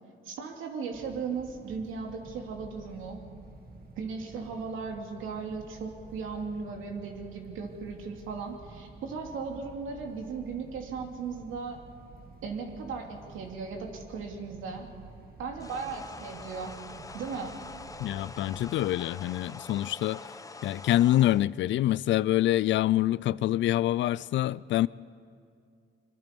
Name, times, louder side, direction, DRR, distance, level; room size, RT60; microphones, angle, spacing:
voice 1, 0.2-3.2 4.0-11.8 12.4-14.9 15.4-16.8 17.1-17.6, right 5 dB, 85° right, 2.8 m, -37 dB
sound 1, 0.9-18.9, right 3 dB, 50° right, 1.8 m, -50 dB
sound 2, 15.6-21.5, left 3 dB, 15° left, 0.8 m, -45 dB
voice 2, 18.0-20.2 20.6-24.9, left 14 dB, 70° left, 0.4 m, -26 dB
25.0 x 23.5 x 5.4 m
cardioid pair, 90°, 20 cm